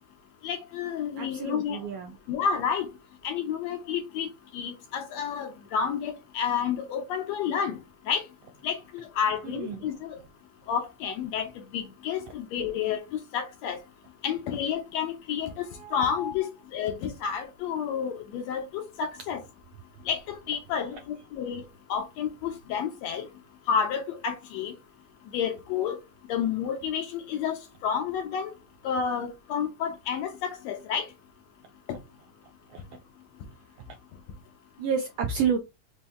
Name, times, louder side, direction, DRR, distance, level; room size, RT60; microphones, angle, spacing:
voice 1, 0.4-1.8 2.3-2.9 3.2-4.3 4.5-7.8 8.1-8.2 8.6-10.2 10.7-13.0 13.3-13.8 14.2-15.7 15.9-19.4 20.1-21.6 21.9-23.3 23.7-24.7 25.3-26.0 26.3-27.6 27.8-28.5 28.8-31.1, left 7 dB, 70° left, 1.8 m, -30 dB
voice 2, 1.2-2.1 9.4-9.8 15.8-16.0 32.7-32.8 34.8-35.6, right 7 dB, 80° right, 1.4 m, -29 dB
5.3 x 2.7 x 3.5 m
omnidirectional pair, 3.4 m